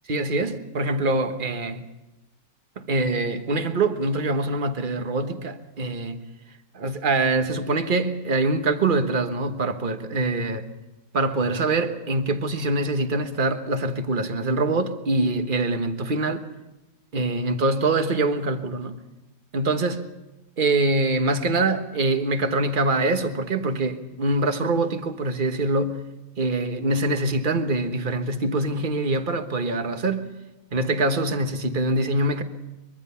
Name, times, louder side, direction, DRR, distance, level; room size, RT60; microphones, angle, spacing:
voice 1, 0.1-1.8 2.8-6.2 6.7-10.7 11.1-16.4 17.1-19.0 19.5-20.1 20.6-26.1 26.4-30.3 30.7-32.4, right 2 dB, 35° right, 1.3 m, -24 dB
23.5 x 23.0 x 5.7 m
omnidirectional pair, 1.6 m